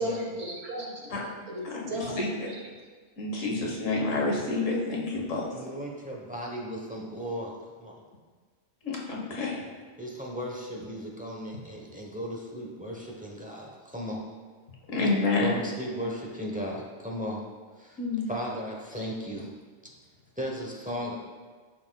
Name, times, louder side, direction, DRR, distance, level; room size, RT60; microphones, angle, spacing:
voice 1, 0.0-2.6, right 1 dB, 70° right, -1 dB, 1.6 m, -35 dB
voice 2, 1.6-2.5 3.2-5.4 8.8-9.6 14.9-15.5 18.0-18.3, left 3 dB, 75° left, -2 dB, 1.6 m, -28 dB
voice 3, 5.5-8.1 10.0-14.2 15.4-17.4 17.8-18.0 18.3-19.5 20.4-21.2, equal, 5° right, -2 dB, 0.8 m, -36 dB
10.5 x 5.7 x 2.3 m, 1.5 s
omnidirectional pair, 1.4 m